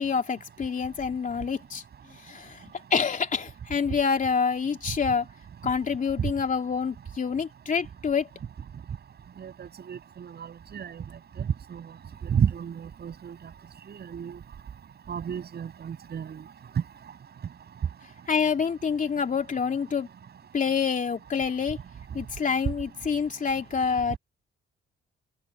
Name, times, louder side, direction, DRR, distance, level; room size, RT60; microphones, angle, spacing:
voice 1, 0.0-1.8 2.2-2.6 2.9-5.2 5.6-8.3 18.3-20.1 20.5-21.8 22.1-24.2, left 6 dB, 40° left, 3.2 m, -27 dB
voice 2, 9.4-11.0 11.4-11.9 12.2-13.4 13.9-14.4 15.1-16.4, right 8 dB, 55° right, 8.0 m, -31 dB
open air
cardioid pair, 90°, 20 cm